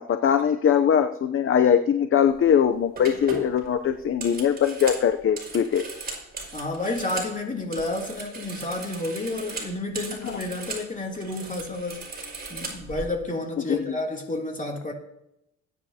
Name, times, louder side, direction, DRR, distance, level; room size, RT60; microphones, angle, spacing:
voice 1, 0.0-5.8 10.2-10.4 13.7-14.0, left 8 dB, 45° left, 0.7 m, -21 dB
sound 1, 2.3-2.5 3.0-7.4 7.6-10.9 11.1-13.0, right 3 dB, 30° right, 5.2 m, -38 dB
voice 2, 6.5-14.9, left 2 dB, 25° left, 3.0 m, -31 dB
20.0 x 9.5 x 2.9 m
cardioid pair, 90°, 30 cm